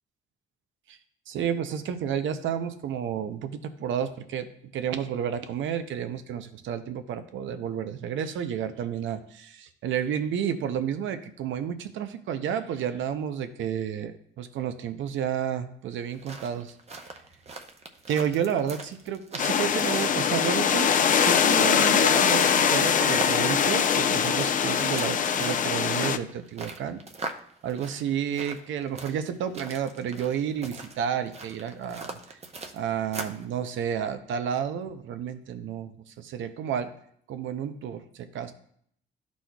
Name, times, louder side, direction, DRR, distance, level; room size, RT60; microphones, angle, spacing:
voice 1, 1.3-4.5 4.7-16.7 18.1-18.8 19.1-20.9 21.2-27.0 27.6-32.2 32.7-36.9 37.3-38.5, right 8 dB, 75° right, 10 dB, 0.6 m, -31 dB
sound 1, 16.0-33.5, right 3 dB, 30° right, 0.7 m, -42 dB
sound 2, 19.4-26.2, left 7 dB, 40° left, 0.4 m, -22 dB
11.5 x 4.1 x 2.3 m, 0.65 s
cardioid pair, 90°, 20 cm